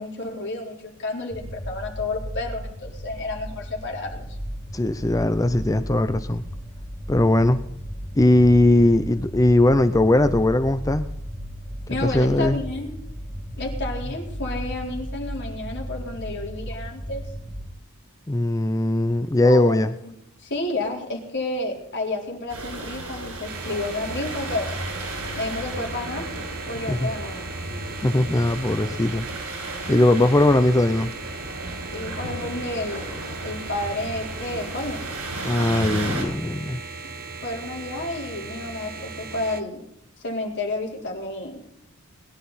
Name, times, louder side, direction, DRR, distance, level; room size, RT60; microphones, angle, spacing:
voice 1, 0.0-4.4 11.9-12.9 13.5-17.2 19.4-20.1 20.4-24.7 25.4-26.3 26.7-27.5 31.9-35.1 37.4-39.8 40.2-41.7, left 2 dB, 55° left, -1 dB, 4.2 m, -31 dB
sound 1, 1.3-17.7, equal, 15° right, 2.2 m, -35 dB
voice 2, 4.7-6.4 7.1-7.6 8.2-11.1 12.0-12.6 18.3-19.9 26.9-27.1 28.0-29.3 29.9-31.1 35.4-36.8, left 1 dB, 15° left, 10 dB, 0.6 m, -19 dB
sound 2, 22.5-36.2, right 1 dB, 90° right, 7.0 m, -34 dB
sound 3, 23.4-39.6, right 4 dB, 45° right, 1.3 m, -37 dB
21.0 x 11.5 x 4.2 m, 0.76 s
head